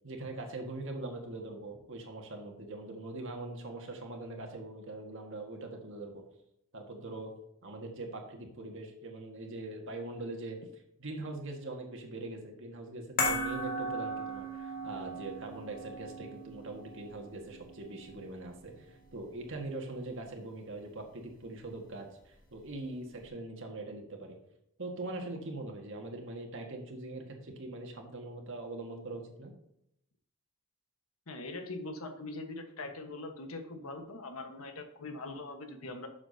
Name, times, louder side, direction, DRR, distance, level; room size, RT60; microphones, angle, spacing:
voice 1, 0.0-6.2 6.7-7.3 7.6-10.6 11.0-24.4 24.8-29.5, right 2 dB, 60° right, 2 dB, 1.8 m, -42 dB
sound 1, 13.2-19.6 19.9-20.0, equal, 40° left, 1.9 m, -37 dB
voice 2, 31.3-36.1, left 2 dB, 80° left, 5 dB, 1.4 m, -42 dB
11.5 x 7.3 x 2.8 m, 0.77 s
head